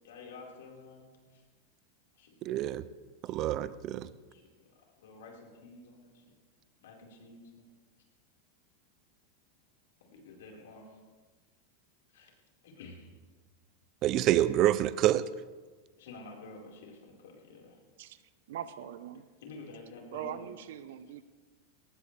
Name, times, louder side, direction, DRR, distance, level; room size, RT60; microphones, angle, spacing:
voice 1, 0.0-1.4 2.1-2.6 3.3-3.4 4.3-4.5 4.7-6.2 6.8-7.7 10.0-11.0 12.1-12.3 12.6-13.1 16.0-17.8 19.4-20.5, left 3 dB, 85° left, -1 dB, 4.7 m, -50 dB
voice 2, 2.4-2.8 3.2-4.1 14.0-15.2, right 13 dB, 30° right, 15 dB, 0.4 m, -27 dB
voice 3, 18.5-19.2 20.1-21.2, right 10 dB, 70° right, 12 dB, 0.9 m, -41 dB
21.5 x 18.0 x 3.4 m, 1.4 s
supercardioid pair, 170°, 0 cm